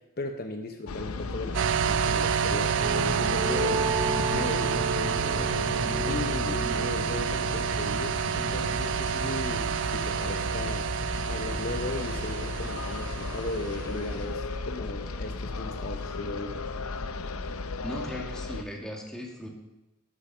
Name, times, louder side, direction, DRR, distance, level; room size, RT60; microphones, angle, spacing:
voice 1, 0.2-3.9 4.3-5.5 6.1-10.9 11.3-16.6, left 2 dB, 45° left, 5 dB, 0.9 m, -37 dB
sound 1, 0.9-18.6, left 3 dB, 90° left, 0.8 m, -35 dB
sound 2, 1.5-14.1, right 8 dB, 60° right, 0.3 m, -29 dB
sound 3, 2.8-10.3, right 1 dB, 40° right, 2.7 m, -33 dB
voice 2, 17.8-19.5, equal, 5° left, 0 dB, 2.0 m, -38 dB
12.0 x 10.5 x 5.7 m, 0.98 s
head